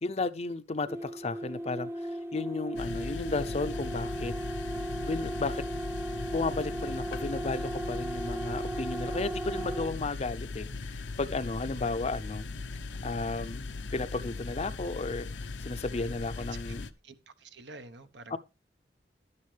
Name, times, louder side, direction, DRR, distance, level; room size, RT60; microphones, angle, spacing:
voice 1, 0.0-4.3 5.0-5.6 6.3-12.5 13.0-16.9 18.3-18.4, left 3 dB, 35° left, 0.5 m, -34 dB
sound 1, 0.9-9.9, right 1 dB, 15° right, 0.7 m, -36 dB
sound 2, 2.8-16.9, left 3 dB, 85° left, 0.7 m, -39 dB
voice 2, 17.0-18.4, right 3 dB, 80° right, 1.1 m, -48 dB
11.5 x 9.7 x 3.3 m
head